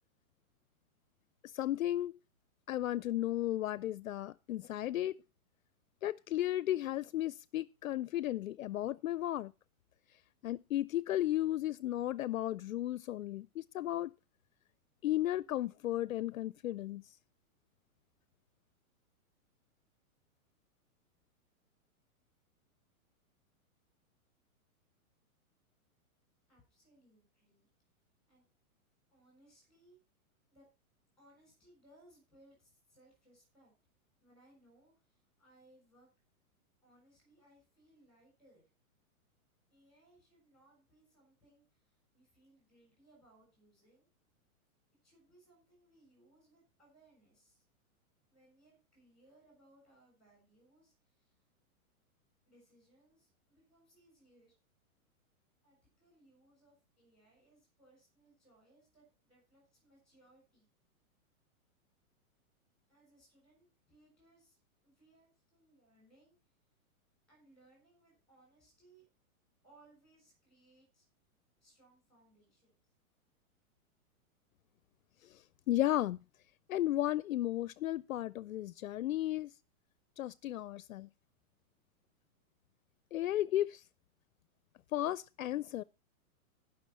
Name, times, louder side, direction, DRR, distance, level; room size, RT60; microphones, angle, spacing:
voice 1, 1.5-2.1 2.7-5.2 6.0-9.5 10.4-14.1 15.0-17.0 75.2-75.4 75.7-76.2 76.7-79.5 80.2-81.1 83.1-83.8 84.9-85.8, left 13 dB, 70° left, 0.5 m, -34 dB
voice 2, 26.5-27.7 28.2-28.5 29.1-30.0 30.5-30.7 31.2-33.7 34.2-36.1 36.8-38.6 39.7-44.1 45.0-47.6 48.3-51.4 52.5-54.5 55.6-60.7 62.9-66.5 67.3-69.1 69.6-71.1 71.6-72.7, right 1 dB, ahead, 6.7 m, -66 dB
17.5 x 6.2 x 4.1 m
hypercardioid pair, 180°, 43 cm